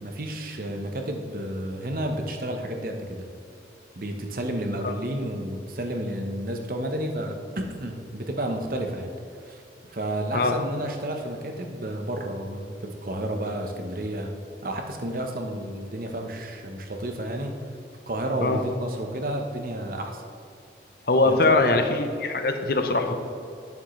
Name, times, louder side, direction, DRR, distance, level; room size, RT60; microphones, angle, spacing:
voice 1, 0.0-3.3 4.0-9.1 9.4-9.6 9.9-14.3 14.6-17.6 18.1-20.2 21.2-21.8, right 1 dB, 50° right, 3 dB, 0.9 m, -31 dB
voice 2, 21.1-23.2, left 3 dB, 55° left, 6 dB, 0.8 m, -22 dB
11.5 x 7.1 x 3.2 m, 2.5 s
head